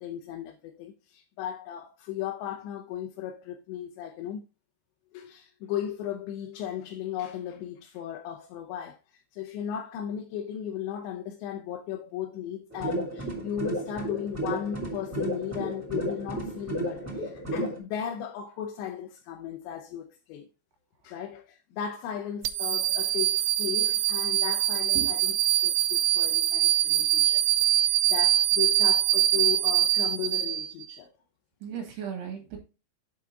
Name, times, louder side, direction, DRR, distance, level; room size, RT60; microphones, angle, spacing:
voice 1, 0.0-4.4 5.1-20.5 21.0-25.4 25.6-31.1, left 10 dB, 80° left, 2.9 m, -36 dB
sound 1, 12.7-17.8, right 1 dB, 5° right, 1.4 m, -33 dB
sound 2, 22.4-30.9, right 13 dB, 90° right, 2.9 m, -24 dB
voice 2, 25.0-25.3 31.6-32.6, right 7 dB, 70° right, 3.7 m, -37 dB
7.5 x 5.9 x 3.7 m
omnidirectional pair, 5.2 m